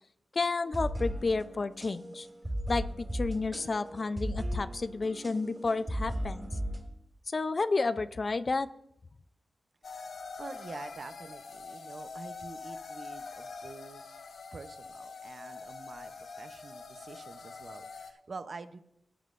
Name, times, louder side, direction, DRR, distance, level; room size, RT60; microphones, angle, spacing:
voice 1, 0.3-2.3 2.7-6.5 7.3-8.7, left 3 dB, 45° left, 13 dB, 0.4 m, -31 dB
sound 1, 0.6-6.8, equal, 25° right, 2.4 m, -36 dB
sound 2, 9.8-18.1, left 4 dB, 80° left, 1.1 m, -44 dB
voice 2, 10.4-14.0 14.5-18.8, right 4 dB, 55° right, 11 dB, 0.6 m, -46 dB
18.0 x 9.3 x 2.5 m, 0.78 s
wide cardioid pair, 80°, 0 cm